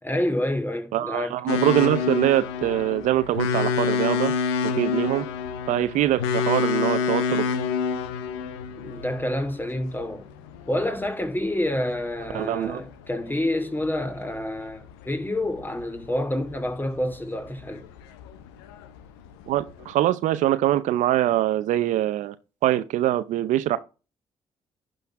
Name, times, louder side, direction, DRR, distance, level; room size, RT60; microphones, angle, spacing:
voice 1, 0.0-1.4 8.8-10.3 10.6-17.8, left 1 dB, 15° left, 2.5 m, -28 dB
voice 2, 0.9-4.3 4.6-5.3 5.7-7.4 12.3-12.8 19.5-22.3 22.6-23.8, right 13 dB, 70° right, 0.7 m, -23 dB
sound 1, 1.5-19.9, left 6 dB, 90° left, 0.8 m, -29 dB
11.5 x 4.0 x 5.9 m
hypercardioid pair, 45°, 13 cm